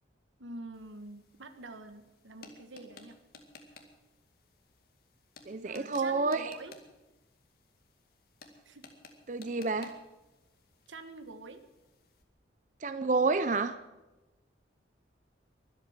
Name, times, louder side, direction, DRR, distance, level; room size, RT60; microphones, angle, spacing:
voice 1, 0.4-3.2 3.7-3.8 5.6-6.7 8.6-8.9 10.9-11.6, right 2 dB, 90° right, 9 dB, 1.5 m, -46 dB
sound 1, 0.7-12.2, left 3 dB, 55° left, 2.1 m, -57 dB
voice 2, 5.5-6.5 9.3-10.0 12.8-13.7, right 3 dB, 40° right, 12 dB, 0.6 m, -29 dB
23.0 x 8.4 x 7.3 m, 1.1 s
head